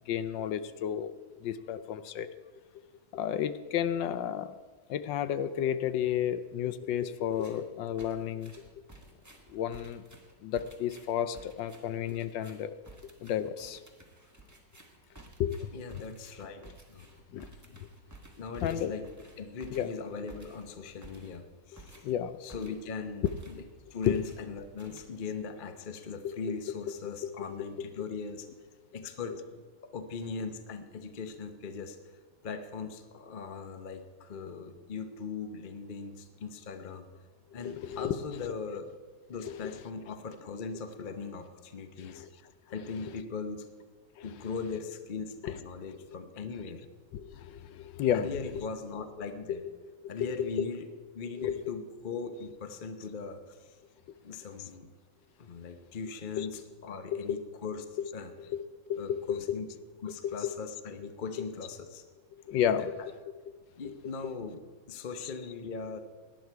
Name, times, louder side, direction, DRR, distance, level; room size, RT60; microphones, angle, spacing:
voice 1, 0.1-1.1 1.4-2.3 3.1-4.5 4.9-8.5 9.5-10.0 10.4-12.7 13.2-13.8 15.4-15.7 17.3-17.5 18.6-18.9 19.7-19.9 21.7-22.4 24.1-24.2 27.2-27.3 37.6-38.2 39.5-39.6 42.0-42.2 44.2-44.3 45.4-45.5 47.1-48.3 50.2-50.3 51.4-51.5 56.4-56.5 57.1-57.4 58.0-58.1 58.5-58.6 58.9-59.6 60.2-60.3 62.5-62.9 63.8-63.9, left 10 dB, 70° left, 12 dB, 1.3 m, -32 dB
sound 1, 7.3-7.7 8.0-23.0 23.3-23.7 24.0-25.4, right 2 dB, 10° right, 1.3 m, -54 dB
voice 2, 15.7-17.1 18.4-19.1 19.4-22.0 22.4-23.6 23.9-28.5 28.9-29.6 29.9-32.0 32.4-37.1 37.5-38.9 39.3-42.2 42.7-43.7 44.2-46.8 48.1-49.6 50.1-50.9 51.1-53.8 54.2-54.9 55.4-57.8 58.1-58.3 59.0-59.7 60.0-62.0 62.7-62.9 63.8-64.6 64.9-66.0, left 5 dB, 45° left, 8 dB, 0.6 m, -39 dB
17.5 x 10.5 x 4.6 m, 1.4 s
omnidirectional pair, 2.2 m